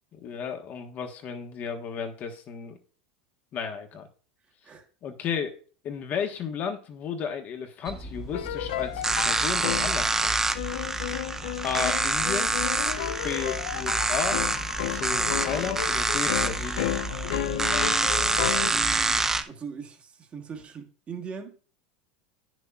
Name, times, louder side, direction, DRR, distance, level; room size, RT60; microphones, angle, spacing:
voice 1, 0.1-2.8 3.5-4.1 5.0-5.6 5.8-10.4 11.6-12.6 13.2-14.4 14.9-16.9, left 7 dB, 40° left, 1.3 m, -33 dB
sound 1, 7.9-19.4, right 3 dB, 10° right, 0.5 m, -27 dB
sound 2, 8.3-10.0 10.5-18.7, left 14 dB, 80° left, 0.4 m, -32 dB
voice 2, 17.5-18.2 18.7-21.5, right 5 dB, 25° right, 1.4 m, -40 dB
9.7 x 6.2 x 2.4 m
supercardioid pair, 125°, 5 cm